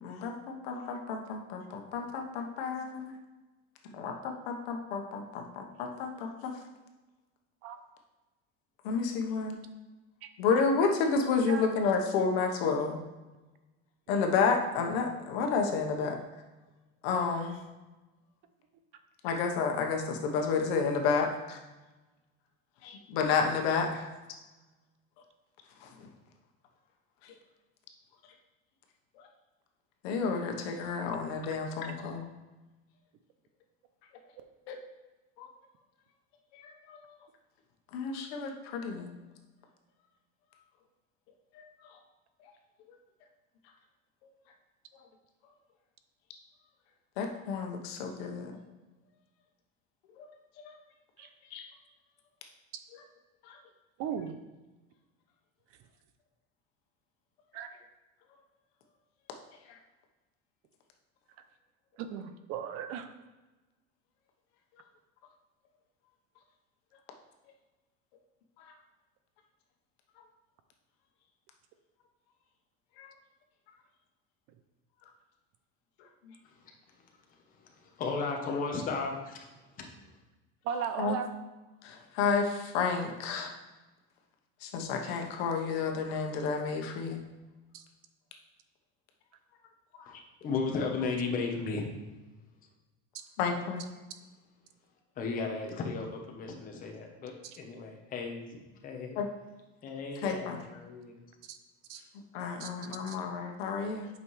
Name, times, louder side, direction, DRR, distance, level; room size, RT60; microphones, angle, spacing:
voice 1, 0.0-3.1 3.8-6.5 8.8-9.6 10.4-13.0 14.1-16.2 17.0-17.6 19.2-21.6 22.8-24.1 25.8-26.1 27.2-27.3 29.2-29.3 30.0-32.3 34.7-34.8 35.4-35.5 36.5-37.0 37.9-39.1 41.5-42.0 42.9-43.0 47.2-48.5 50.2-50.3 51.5-51.6 53.4-53.6 59.7-59.8 68.6-68.7 73.0-73.1 76.2-76.3 81.0-81.2 81.8-83.5 84.6-87.2 89.9-90.1 93.4-93.8 99.2-99.3 100.2-100.6 102.3-104.1, left 5 dB, 75° left, 3 dB, 1.2 m, -31 dB
voice 2, 54.0-54.4 57.5-57.7 62.0-63.1 80.6-81.3 87.7-87.8 101.4-101.6 101.9-102.0 102.6-102.7 103.1-103.2, right 8 dB, 45° right, 9 dB, 0.5 m, -37 dB
voice 3, 77.6-79.4 79.8-79.9 90.1-91.9 95.2-99.2 99.8-101.2 102.0-102.1, left 4 dB, 25° left, 2 dB, 1.0 m, -35 dB
8.2 x 5.4 x 3.2 m, 1.1 s
cardioid pair, 170°, 31 cm